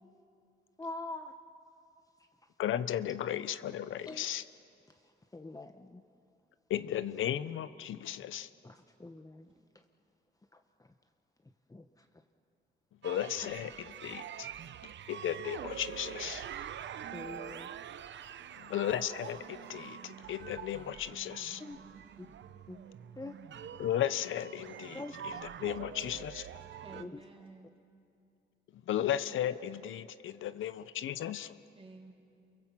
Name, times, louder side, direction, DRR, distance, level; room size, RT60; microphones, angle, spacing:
voice 1, 0.8-1.3 4.1-4.2 5.3-6.0 8.6-9.5 10.5-10.6 11.7-12.0 16.6-16.7 17.1-17.7 21.6-21.8 22.7-22.9 23.2-23.4 24.9-25.4 26.9-27.2, left 2 dB, 15° left, 6 dB, 1.1 m, -44 dB
voice 2, 2.6-4.4 6.7-8.5 13.0-13.7 14.0-14.5 15.1-16.5 18.6-21.6 23.8-25.3 25.6-26.5 28.9-31.5, left 11 dB, 80° left, 13 dB, 0.8 m, -35 dB
sound 1, 13.0-27.0, right 9 dB, 65° right, 0.8 m, -45 dB
voice 3, 21.7-22.4 26.8-27.8 31.7-32.1, right 3 dB, 30° right, 1 dB, 3.8 m, -54 dB
28.5 x 23.5 x 7.5 m, 2.6 s
cardioid pair, 80°, 20 cm